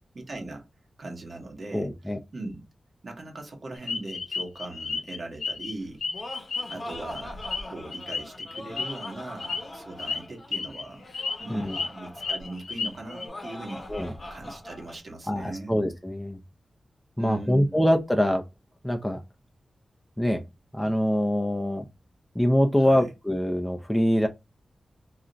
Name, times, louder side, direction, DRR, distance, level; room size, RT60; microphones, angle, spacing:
voice 1, 0.1-0.6 1.0-1.9 2.3-2.6 3.0-6.3 6.7-11.0 11.4-15.7 17.2-17.7 22.8-23.1, right 2 dB, 55° right, 1.0 m, -40 dB
voice 2, 1.7-2.2 11.5-11.8 13.9-14.1 15.3-16.4 17.2-18.4 18.8-19.2 20.2-20.4 20.7-21.8 22.4-24.3, equal, 5° left, 0.4 m, -24 dB
sound 1, 3.9-5.7 6.0-9.1 9.4-9.6 10.0-10.2 10.5-10.8 11.1-11.9 12.2-13.3, left 4 dB, 90° left, 0.4 m, -32 dB
Laughter, 5.8-15.0, left 1 dB, 40° left, 0.9 m, -42 dB
2.4 x 2.1 x 3.8 m
wide cardioid pair, 70°, 0 cm